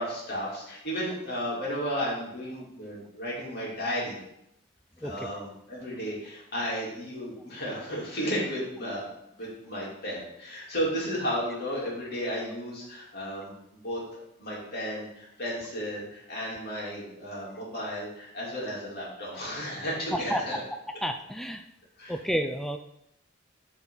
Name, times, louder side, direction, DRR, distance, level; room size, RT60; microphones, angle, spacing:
voice 1, 0.0-4.2 5.0-9.0 9.4-13.6 13.8-14.0 14.4-20.6 22.0-22.2, equal, 50° left, -6 dB, 3.2 m, -33 dB
voice 2, 21.0-21.6 22.1-22.8, equal, ahead, 7 dB, 0.3 m, -30 dB
11.5 x 4.0 x 3.9 m, 0.82 s
head